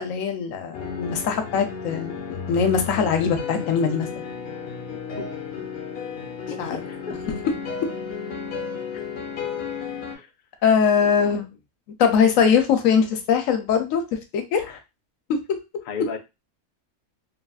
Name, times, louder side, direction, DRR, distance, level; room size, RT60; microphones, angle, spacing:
voice 1, 0.0-4.2 6.6-6.8 7.3-7.4 10.6-11.5 12.0-14.0 14.3-14.8 15.3-15.6, left 6 dB, 75° left, 7 dB, 1.0 m, -21 dB
sound 1, 0.7-10.1, left 6 dB, 55° left, 0.8 m, -33 dB
voice 2, 4.9-5.3 6.5-6.6 6.9-7.2 10.1-10.3 11.0-11.4 15.9-16.2, left 6 dB, 90° left, 4 dB, 0.4 m, -34 dB
3.2 x 2.5 x 2.3 m, 0.25 s
omnidirectional pair, 1.5 m